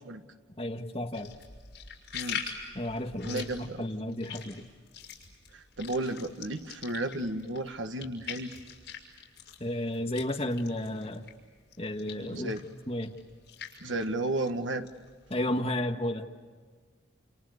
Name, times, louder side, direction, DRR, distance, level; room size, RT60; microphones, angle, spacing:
voice 1, 0.6-1.3 2.7-4.6 9.6-11.3 11.8-12.5 12.9-13.1 15.3-16.3, left 1 dB, 30° left, 3 dB, 1.8 m, -32 dB
sound 1, 1.1-11.4 11.7-15.7, left 7 dB, 60° left, 6.3 m, -43 dB
voice 2, 3.2-3.8 5.5-8.5 12.3-12.6 13.8-14.9, right 2 dB, 80° right, 6 dB, 1.6 m, -33 dB
30.0 x 29.5 x 6.7 m, 1.5 s
head